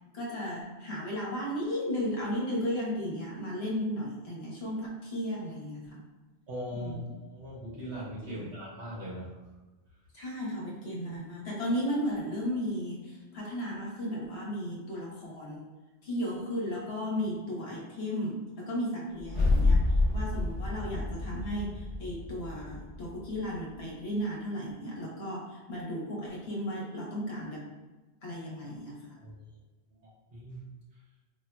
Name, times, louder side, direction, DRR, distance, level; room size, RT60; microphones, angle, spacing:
voice 1, 0.1-6.0 6.7-7.2 8.3-8.6 10.1-15.6 16.0-19.8 20.1-27.6 28.2-29.1, equal, 70° left, -4 dB, 1.2 m, -35 dB
voice 2, 6.5-9.3 29.2-29.3 30.3-30.6, equal, 75° right, -7 dB, 1.5 m, -39 dB
sound 1, 19.2-23.6, left 2 dB, 35° left, 1.1 m, -28 dB
4.7 x 2.6 x 2.2 m, 1.2 s
omnidirectional pair, 1.1 m